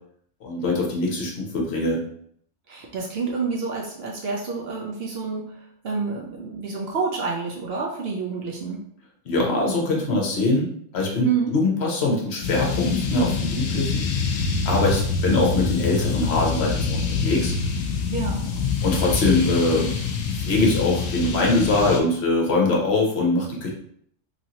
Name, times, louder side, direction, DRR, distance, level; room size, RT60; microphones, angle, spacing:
voice 1, 0.4-2.0 9.3-14.1 14.6-17.5 18.8-20.0 20.4-23.7, left 2 dB, 60° left, -2 dB, 1.0 m, -22 dB
voice 2, 2.7-8.8 11.2-11.6 18.1-18.5, right 5 dB, 60° right, -1 dB, 0.7 m, -28 dB
sound 1, 12.4-22.0, left 5 dB, 85° left, 1.0 m, -26 dB
3.0 x 2.6 x 2.8 m, 0.66 s
omnidirectional pair, 1.3 m